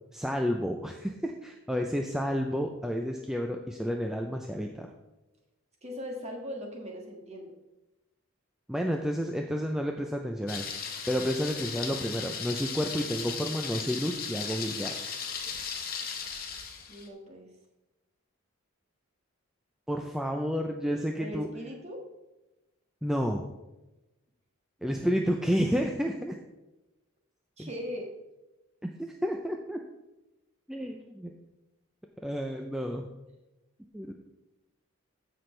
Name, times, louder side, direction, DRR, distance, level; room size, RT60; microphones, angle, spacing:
voice 1, 0.1-4.9 8.7-10.7 11.1-14.9 19.9-21.5 23.0-23.5 24.8-26.3 27.6-27.7 29.0-29.8 30.7-31.3 32.2-33.1 33.9-34.1, equal, ahead, 2 dB, 0.4 m, -30 dB
voice 2, 5.8-7.5 16.9-17.5 21.2-22.0 27.6-28.1, equal, 30° right, 0 dB, 1.6 m, -39 dB
Thunder, 10.5-17.1, left 6 dB, 40° left, 1.1 m, -36 dB
14.5 x 6.0 x 3.3 m, 1.0 s
head